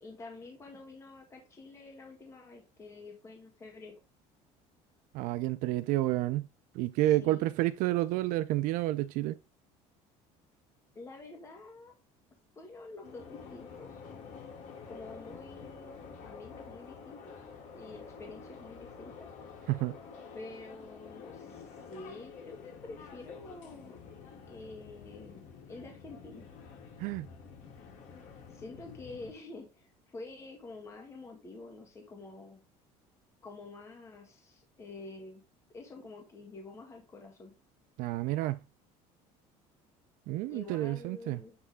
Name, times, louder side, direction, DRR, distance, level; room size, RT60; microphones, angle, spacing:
voice 1, 0.0-3.9 7.2-7.5 10.9-11.9 12.5-14.0 14.9-17.4 17.7-19.3 20.3-24.0 24.5-26.5 28.5-32.6 33.4-35.4 35.7-37.5 40.4-41.5, left 3 dB, 20° left, 1.7 m, -48 dB
voice 2, 5.1-6.5 6.7-9.4 19.7-20.0 27.0-27.3 38.0-38.6 40.3-41.4, right 16 dB, 70° right, 0.4 m, -30 dB
sound 1, 13.0-29.3, left 5 dB, 60° left, 2.4 m, -49 dB
8.1 x 3.4 x 3.4 m
cardioid pair, 135°, 14 cm